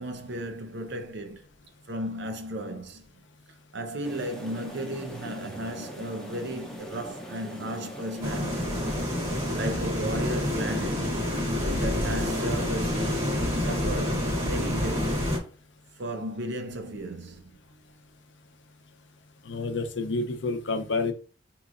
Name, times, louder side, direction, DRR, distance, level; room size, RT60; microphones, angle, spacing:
voice 1, 0.0-1.4 1.9-3.1 3.7-8.7 9.5-11.1 11.7-13.1 13.6-15.2 16.0-17.5, right 1 dB, 60° right, 0.7 m, -35 dB
sound 1, 4.0-9.8, equal, ahead, 0.6 m, -41 dB
sound 2, 8.2-15.4, left 1 dB, 35° right, 1.2 m, -28 dB
voice 2, 19.5-21.1, left 3 dB, 65° left, 0.6 m, -29 dB
5.1 x 3.0 x 2.5 m
head